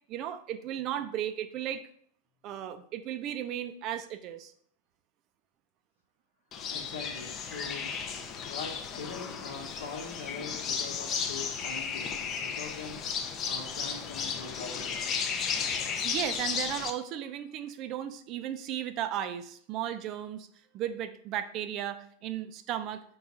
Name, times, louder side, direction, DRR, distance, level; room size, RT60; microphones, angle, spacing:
voice 1, 0.1-1.8 2.4-4.5 16.0-20.5 20.7-23.0, right 10 dB, 40° right, 10 dB, 0.4 m, -35 dB
sound 1, 6.5-16.9, left 6 dB, 35° left, 0.4 m, -34 dB
voice 2, 6.7-15.2, left 5 dB, 85° left, 1 dB, 1.0 m, -43 dB
3.8 x 2.3 x 4.1 m, 0.63 s
supercardioid pair, 130°, 0 cm